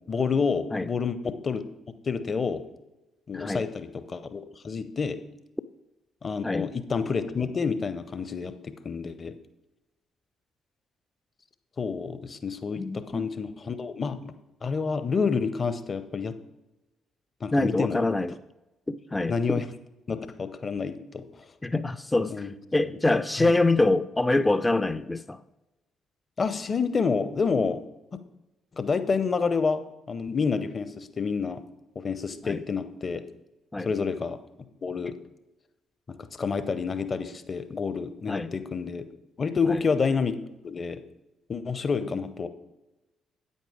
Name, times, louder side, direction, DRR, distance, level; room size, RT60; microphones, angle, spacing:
voice 1, 0.0-1.6 2.1-2.6 3.3-5.2 6.2-9.3 11.8-14.3 14.6-16.4 17.4-18.0 19.3-19.7 20.1-21.2 22.3-22.5 23.4-23.5 26.4-27.8 28.7-31.6 31.9-33.2 33.8-34.4 34.8-35.2 36.1-39.1 39.4-40.4 40.6-41.0 41.5-42.5, left 5 dB, 35° left, 12 dB, 0.9 m, -28 dB
voice 2, 3.3-3.6 6.4-6.7 12.8-13.3 17.5-18.4 18.9-19.6 21.6-25.4 32.4-32.6 33.7-33.9 38.3-38.5 39.7-39.8, left 2 dB, 15° left, 12 dB, 0.5 m, -25 dB
9.1 x 8.3 x 5.0 m, 0.98 s
figure-of-eight pair, 45°, 0 cm